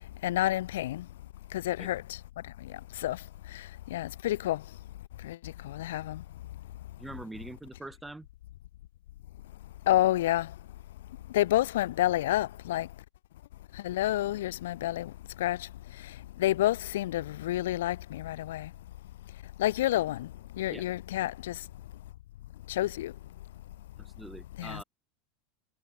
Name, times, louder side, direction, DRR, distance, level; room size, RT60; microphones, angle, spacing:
voice 1, 0.2-1.1 1.5-4.6 5.2-6.2 9.9-10.6 11.3-12.9 13.7-18.7 19.6-21.7 22.7-23.1 24.6-24.8, left 14 dB, 90° left, 0.5 m, -30 dB
voice 2, 7.0-8.3 20.7-20.9 24.0-24.8, right 2 dB, 5° right, 2.5 m, -43 dB
supercardioid pair, 145°, 0 cm